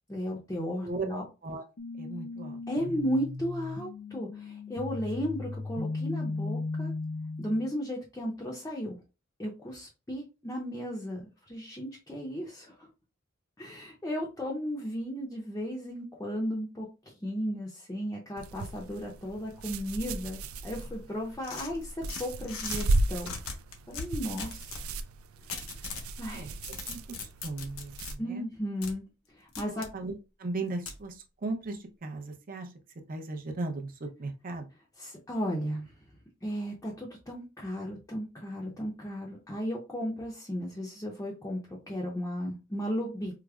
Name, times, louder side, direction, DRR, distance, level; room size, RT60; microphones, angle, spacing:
voice 1, 0.1-1.2 2.7-6.9 7.4-9.0 9.4-12.9 13.6-23.3 23.9-24.8 25.9-26.5 28.2-29.1 29.3-29.9 35.0-35.9 36.4-43.3, equal, 15° left, -3 dB, 0.6 m, -35 dB
voice 2, 0.8-1.6 2.0-3.0 26.3-26.5 26.8-27.0 27.4-28.4 29.7-30.1 30.4-32.7 33.1-34.7, right 3 dB, 45° right, 4 dB, 0.6 m, -37 dB
sound 1, 1.8-7.7, left 3 dB, 55° left, 0.6 m, -36 dB
sound 2, 18.4-28.2, right 2 dB, 85° right, 0.3 m, -35 dB
sound 3, 21.4-22.9 23.2-24.9 25.5-26.1 26.5-28.1 28.8-28.9 29.5-29.9 30.9-31.0, left 5 dB, 85° left, 0.8 m, -39 dB
4.8 x 2.0 x 2.3 m, 0.29 s
head